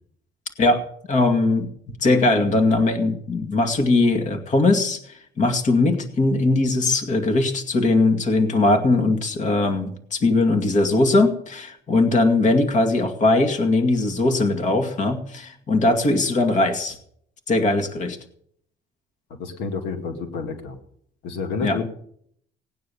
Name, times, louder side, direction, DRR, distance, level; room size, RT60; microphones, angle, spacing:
voice 1, 1.1-17.0 17.5-18.2 21.6-21.8, left 2 dB, 45° left, 6 dB, 2.2 m, -20 dB
voice 2, 19.4-20.8 21.2-21.9, left 5 dB, 90° left, 6 dB, 2.1 m, -29 dB
18.0 x 9.4 x 7.0 m, 0.67 s
cardioid pair, 110°, 17 cm